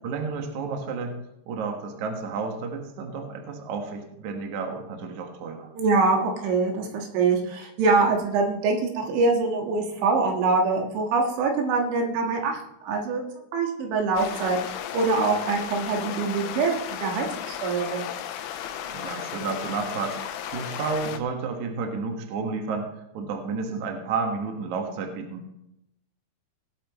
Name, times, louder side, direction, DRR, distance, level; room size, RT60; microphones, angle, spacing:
voice 1, 0.0-1.2 1.5-5.7 18.8-25.5, right 4 dB, 60° right, 3 dB, 2.1 m, -31 dB
voice 2, 5.7-13.2 13.5-16.7 17.0-18.1, right 4 dB, 80° right, 1 dB, 3.9 m, -24 dB
sound 1, 14.2-21.2, left 10 dB, 85° left, 3.0 m, -35 dB
19.5 x 8.6 x 3.1 m, 0.83 s
omnidirectional pair, 5.3 m